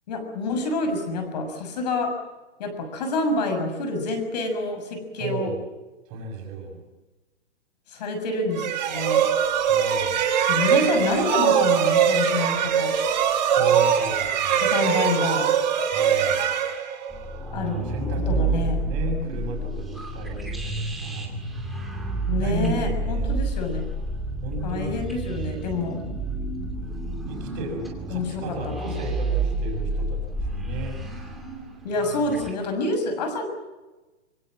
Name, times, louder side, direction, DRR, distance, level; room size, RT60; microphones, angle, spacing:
voice 1, 0.1-2.2 2.6-5.5 7.9-9.3 10.5-12.9 14.5-15.5 17.5-17.8 18.3-18.8 22.3-23.9 24.6-26.0 28.1-29.1 31.8-33.4, left 2 dB, 35° left, 7 dB, 6.5 m, -27 dB
voice 2, 5.1-5.6 6.1-6.8 9.7-10.3 13.5-14.7 15.9-16.5 17.5-21.4 22.4-23.4 24.4-25.1 27.3-31.0, right 3 dB, 20° right, -3 dB, 5.9 m, -34 dB
sound 1, 8.5-17.3, right 8 dB, 40° right, 5.1 m, -22 dB
sound 2, 17.1-32.5, right 2 dB, ahead, 2.5 m, -29 dB
25.5 x 25.0 x 7.6 m, 1.1 s
hypercardioid pair, 170°, 35 cm